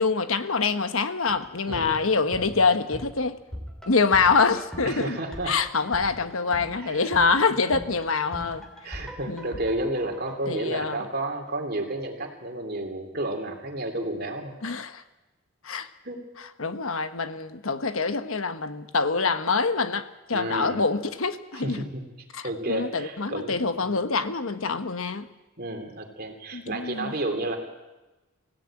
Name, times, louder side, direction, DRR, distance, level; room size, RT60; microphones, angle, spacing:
voice 1, 0.0-3.4 3.9-5.2 5.4-9.0 9.3-9.5 10.5-11.1 14.6-15.0 15.6-15.9 16.6-21.9 22.3-25.3 26.5-27.1, left 4 dB, 75° left, 10 dB, 1.2 m, -25 dB
sound 1, 1.3-11.2 11.5-11.6, equal, 5° left, 3.3 m, -42 dB
voice 2, 4.8-5.5 6.8-7.0 8.8-14.6 16.0-16.2 20.3-20.8 21.6-22.0 22.4-23.5 25.6-27.6, right 1 dB, 45° right, 4 dB, 3.1 m, -31 dB
24.5 x 16.0 x 8.8 m, 1.1 s
head